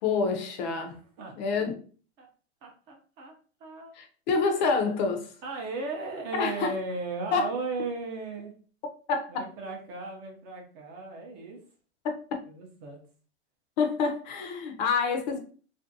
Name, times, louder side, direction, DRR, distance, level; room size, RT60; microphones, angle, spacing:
voice 1, 0.0-0.9 1.4-1.8 3.9-5.3 6.3-6.8 7.3-7.5 9.1-9.5 12.0-12.4 13.8-15.4, left 4 dB, 40° left, 5 dB, 0.5 m, -27 dB
voice 2, 1.2-1.6 2.2-2.3 2.6-3.3 3.6-3.9 5.4-8.5 9.3-11.6 12.5-13.0, right 3 dB, 30° right, 2 dB, 0.5 m, -36 dB
2.5 x 2.1 x 2.5 m, 0.41 s
hypercardioid pair, 140°, 34 cm